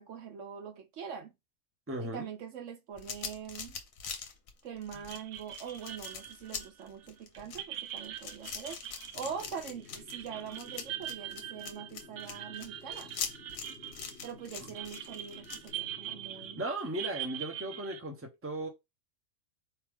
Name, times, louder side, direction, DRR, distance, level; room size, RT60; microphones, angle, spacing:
voice 1, 0.0-1.3 2.0-3.8 4.6-13.1 14.2-16.6, right 7 dB, 65° right, 0.9 m, -43 dB
voice 2, 1.9-2.3 14.6-14.7 16.5-18.7, right 1 dB, 10° right, 0.8 m, -36 dB
sound 1, 3.0-15.7, left 6 dB, 75° left, 1.2 m, -42 dB
sound 2, 4.9-18.0, right 12 dB, 90° right, 1.1 m, -43 dB
sound 3, 9.1-16.7, left 3 dB, 60° left, 1.6 m, -54 dB
4.5 x 3.3 x 3.5 m
omnidirectional pair, 1.4 m